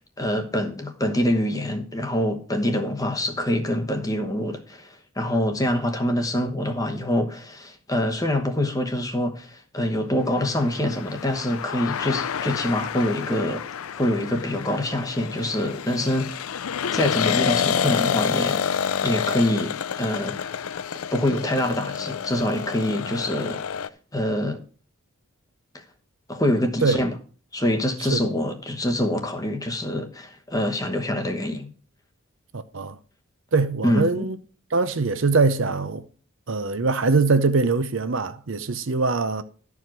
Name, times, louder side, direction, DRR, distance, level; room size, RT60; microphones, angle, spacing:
voice 1, 0.0-13.6 14.0-16.4 16.9-18.6 19.0-20.5 21.1-23.8 24.1-24.6 26.3-27.1 27.5-31.7 33.8-34.2, left 1 dB, 15° left, 1.0 m, -25 dB
sound 1, 10.4-23.9, left 7 dB, 85° left, 0.5 m, -28 dB
voice 2, 32.5-33.0 33.5-34.4 34.7-36.0 36.5-39.4, right 3 dB, 65° right, 0.7 m, -22 dB
12.5 x 4.9 x 6.0 m
head